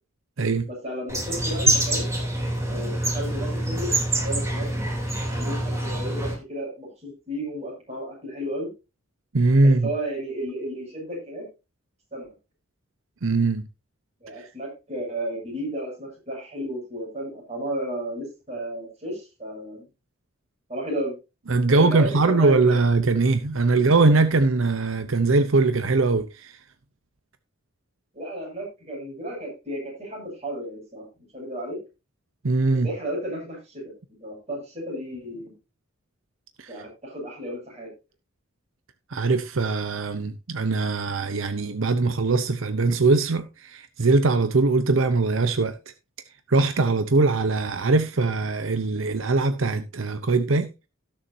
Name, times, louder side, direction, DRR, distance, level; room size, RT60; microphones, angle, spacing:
voice 1, 0.7-2.1 2.7-3.9 4.2-4.7 5.3-8.7 9.6-11.5 12.1-12.3 14.2-19.9 20.7-21.1 21.7-22.8 23.7-23.9 28.1-31.1 31.3-31.8 32.8-33.8 34.2-35.6 36.7-37.9, right 1 dB, 35° right, 7.3 m, -33 dB
sound 1, 1.1-6.3, right 1 dB, 15° right, 3.3 m, -25 dB
voice 2, 9.3-9.9 13.2-13.7 14.4-14.5 21.5-26.6 32.4-32.9 36.6-36.7 39.1-45.7 46.5-50.7, right 3 dB, 75° right, 0.8 m, -21 dB
18.0 x 7.1 x 2.8 m
head